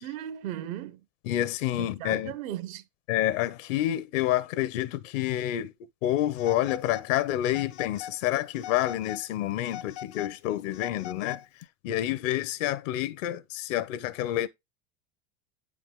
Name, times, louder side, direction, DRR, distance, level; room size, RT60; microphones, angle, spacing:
voice 1, 0.0-1.1 1.7-2.9, right 12 dB, 85° right, 1.0 m, -37 dB
voice 2, 1.2-2.3 3.1-5.7 6.0-11.4 11.8-14.5, left 13 dB, 70° left, 1.0 m, -28 dB
Telephone, 6.4-7.1 7.5-8.2 8.5-9.3 9.6-11.7, left 10 dB, 50° left, 0.6 m, -42 dB
8.9 x 4.9 x 3.7 m
supercardioid pair, 115°, 40 cm